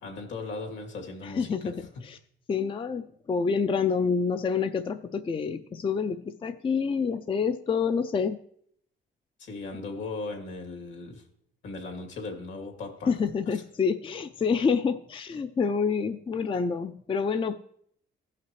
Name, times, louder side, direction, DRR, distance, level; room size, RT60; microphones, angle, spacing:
voice 1, 0.0-1.9 9.4-11.2 11.6-13.1 13.5-13.6, left 3 dB, 75° left, 3 dB, 2.4 m, -38 dB
voice 2, 1.2-1.7 2.0-2.2 2.5-8.4 13.1-17.6, left 5 dB, 25° left, 8 dB, 0.4 m, -27 dB
16.0 x 5.8 x 3.0 m, 0.67 s
cardioid pair, 90°, 20 cm